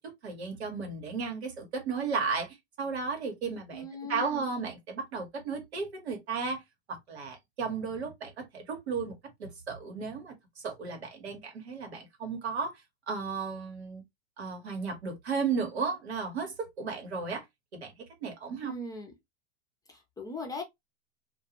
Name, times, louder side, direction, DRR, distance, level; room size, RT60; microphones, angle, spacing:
voice 1, 0.0-3.8 4.1-6.6 6.9-9.1 9.4-14.0 14.4-17.4 17.7-17.9 18.2-18.7, right 5 dB, 85° right, 1.2 m, -34 dB
voice 2, 3.7-4.5 18.6-19.1 19.9-20.6, left 2 dB, 10° left, 0.6 m, -39 dB
2.3 x 2.3 x 2.8 m
hypercardioid pair, 105°, 32 cm